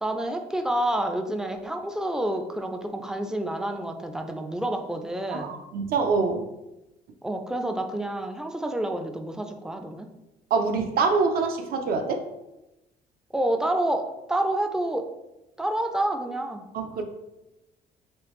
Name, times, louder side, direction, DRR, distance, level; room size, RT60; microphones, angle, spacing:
voice 1, 0.0-5.6 7.2-10.1 13.3-15.1 15.6-16.7, right 1 dB, 5° right, 6 dB, 0.3 m, -28 dB
voice 2, 5.3-6.4 10.5-12.2 16.7-17.0, right 4 dB, 65° right, 6 dB, 0.5 m, -25 dB
3.3 x 3.1 x 3.0 m, 0.96 s
cardioid pair, 110°, 17 cm